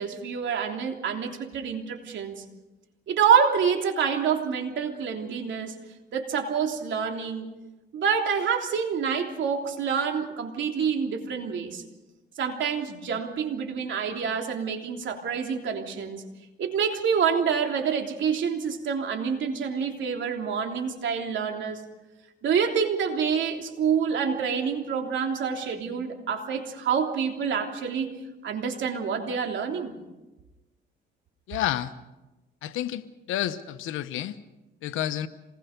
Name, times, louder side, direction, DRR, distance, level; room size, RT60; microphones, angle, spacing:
voice 1, 0.0-2.4 3.1-5.7 6.1-7.5 7.9-11.8 12.4-16.2 16.6-21.8 22.4-28.1 28.4-30.0, right 6 dB, 70° right, 3 dB, 3.3 m, -27 dB
voice 2, 31.5-31.9 32.6-33.0 33.3-34.3 34.8-35.3, left 12 dB, 90° left, 11 dB, 1.1 m, -29 dB
27.0 x 20.0 x 5.3 m, 1.0 s
cardioid pair, 90°, 20 cm